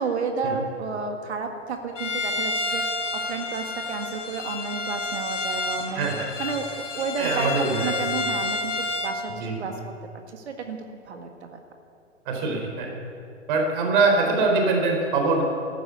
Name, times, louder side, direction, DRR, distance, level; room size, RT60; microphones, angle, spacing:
voice 1, 0.0-6.1 6.4-9.7 10.3-11.6, right 5 dB, 60° right, 5 dB, 1.9 m, -31 dB
Bowed string instrument, 2.0-9.2, left 3 dB, 75° left, 3.3 m, -30 dB
voice 2, 5.9-6.3 7.2-7.9 9.4-9.8 12.3-13.0 13.5-15.4, right 3 dB, 40° right, 1 dB, 4.0 m, -23 dB
14.5 x 11.5 x 8.1 m, 2.5 s
figure-of-eight pair, 115°, 38 cm